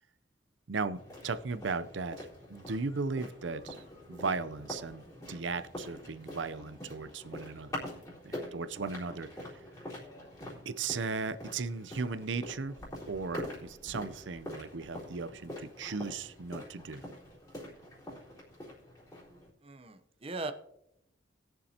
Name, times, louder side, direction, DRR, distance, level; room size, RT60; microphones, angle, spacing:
voice 1, 0.7-3.8 4.1-7.9 8.2-9.6 10.6-12.8 13.1-17.1, right 4 dB, 90° right, 13 dB, 0.6 m, -37 dB
sound 1, 0.9-19.5, left 1 dB, 20° left, 3.8 m, -45 dB
voice 2, 19.6-20.5, right 3 dB, 35° right, 8 dB, 0.8 m, -39 dB
20.5 x 6.9 x 2.9 m, 0.81 s
head